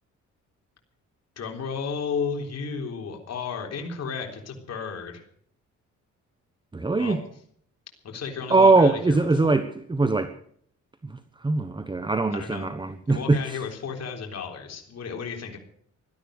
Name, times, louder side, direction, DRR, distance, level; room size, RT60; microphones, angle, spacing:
voice 1, 1.4-5.2 6.9-7.2 8.0-9.5 12.3-12.7 13.1-15.6, left 6 dB, 55° left, 3.7 m, -33 dB
voice 2, 6.7-7.2 8.5-10.3 11.0-13.6, right 3 dB, 15° right, 1.0 m, -22 dB
17.0 x 12.5 x 6.4 m
cardioid pair, 90°, 30 cm